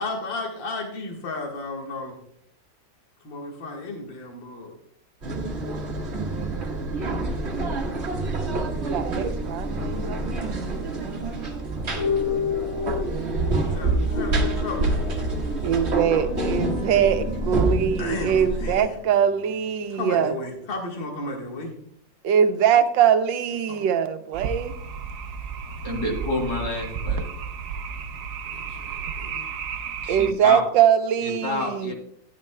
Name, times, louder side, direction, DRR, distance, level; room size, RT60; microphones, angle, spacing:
voice 1, 0.0-2.2 3.2-4.7 11.9-12.2 13.6-15.1 18.0-19.0 19.9-21.8 23.7-23.9 28.5-29.5, left 2 dB, 85° left, 2.4 m, -34 dB
sound 1, 5.2-18.8, right 2 dB, 40° right, 1.5 m, -27 dB
voice 2, 8.7-11.3 13.0-13.5 13.9-14.1 15.6-20.3 22.2-24.7 25.9-26.0 30.1-31.9, right 8 dB, 80° right, 1.5 m, -23 dB
sound 2, 9.7-19.8, left 7 dB, 25° left, 2.0 m, -33 dB
sound 3, 24.3-30.3, right 6 dB, 60° right, 0.9 m, -32 dB
voice 3, 25.8-27.3 30.0-30.6 31.2-31.9, left 2 dB, 60° left, 3.1 m, -29 dB
13.0 x 10.5 x 2.2 m
omnidirectional pair, 2.0 m